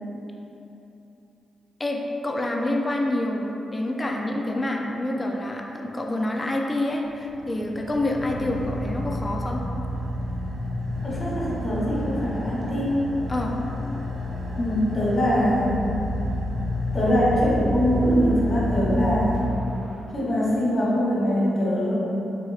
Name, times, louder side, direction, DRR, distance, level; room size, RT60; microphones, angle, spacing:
voice 1, 1.8-9.6 13.3-13.5, left 1 dB, 30° left, 1 dB, 0.4 m, -27 dB
Car / Idling, 7.1-20.0, left 1 dB, 75° right, 1.0 m, -30 dB
voice 2, 11.0-12.9 14.5-15.9 16.9-19.4 20.1-21.9, equal, 45° left, -8 dB, 1.1 m, -23 dB
4.0 x 2.9 x 2.4 m, 3.0 s
supercardioid pair, 50°, 0 cm